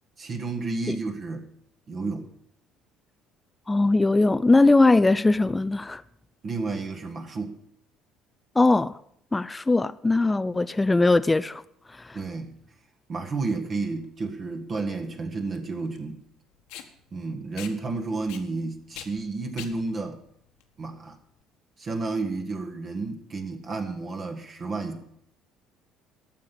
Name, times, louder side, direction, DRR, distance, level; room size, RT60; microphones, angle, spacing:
voice 1, 0.2-1.5 1.9-2.3 6.4-7.6 12.1-12.6 13.1-16.2 17.1-20.2 20.8-21.2 21.8-25.0, right 3 dB, 45° right, 1.7 m, -31 dB
voice 2, 3.7-6.0 8.6-8.9 9.3-11.6 12.0-12.2, left 2 dB, 15° left, 0.4 m, -20 dB
Packing tape duct tape, 13.9-21.4, left 10 dB, 70° left, 1.3 m, -45 dB
13.0 x 6.8 x 9.0 m
hypercardioid pair, 60°, 0 cm